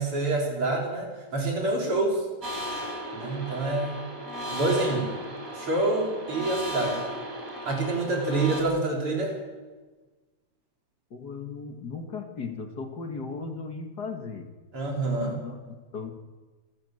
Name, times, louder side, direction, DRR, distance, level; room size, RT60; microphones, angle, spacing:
voice 1, 0.0-2.2 3.1-4.1 4.5-5.1 5.5-7.0 7.6-9.4 14.7-15.4, right 2 dB, 90° right, -1 dB, 4.7 m, -27 dB
sound 1, 2.4-8.6, equal, 40° right, 4.4 m, -36 dB
voice 2, 11.1-14.5 15.2-16.1, left 4 dB, 50° left, 4 dB, 2.2 m, -37 dB
26.5 x 13.5 x 7.8 m, 1.3 s
omnidirectional pair, 2.3 m